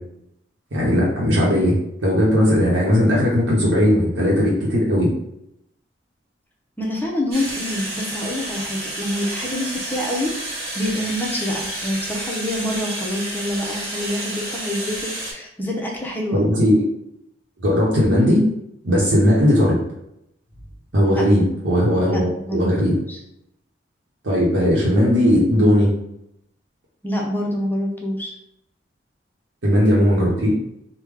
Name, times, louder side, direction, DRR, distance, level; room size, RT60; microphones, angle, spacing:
voice 1, 0.7-1.7 2.0-5.1 16.3-16.8 17.6-18.4 18.8-19.8 20.9-23.0 24.2-25.9 29.6-30.5, equal, 90° right, -5 dB, 0.8 m, -17 dB
voice 2, 6.8-10.3 10.7-16.4 21.2-21.3 22.1-22.7 23.1-23.2 27.0-28.3, left 1 dB, 10° left, -1 dB, 0.6 m, -26 dB
sound 1, 7.3-15.3, right 1 dB, 55° right, 1.0 m, -30 dB
3.4 x 2.2 x 3.3 m, 0.78 s
head